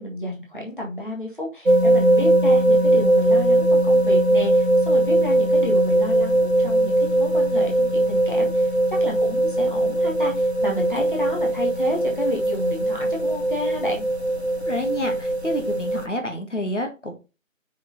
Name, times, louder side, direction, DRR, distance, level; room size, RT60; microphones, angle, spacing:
voice 1, 0.0-14.0, left 1 dB, 40° left, -2 dB, 1.8 m, -31 dB
sound 1, 1.7-16.0, right 1 dB, 55° right, 0.6 m, -20 dB
voice 2, 14.7-17.1, equal, 60° left, 4 dB, 1.8 m, -28 dB
6.2 x 4.5 x 4.0 m, 0.29 s
figure-of-eight pair, 180°, 40 cm